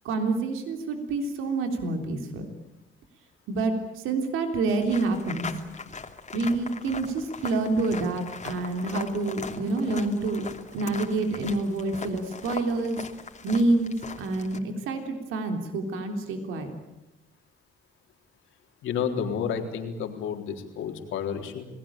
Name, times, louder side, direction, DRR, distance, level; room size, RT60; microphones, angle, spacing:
voice 1, 0.1-2.5 3.5-5.5 6.3-10.5 10.7-13.0 13.4-13.9 14.2-16.7, right 3 dB, 90° right, 5 dB, 3.5 m, -27 dB
sound 1, 4.7-14.6, left 5 dB, 35° left, 2.7 m, -40 dB
voice 2, 18.8-21.7, left 7 dB, 85° left, 4 dB, 3.8 m, -30 dB
28.0 x 19.0 x 8.9 m, 0.96 s
cardioid pair, 90°, 20 cm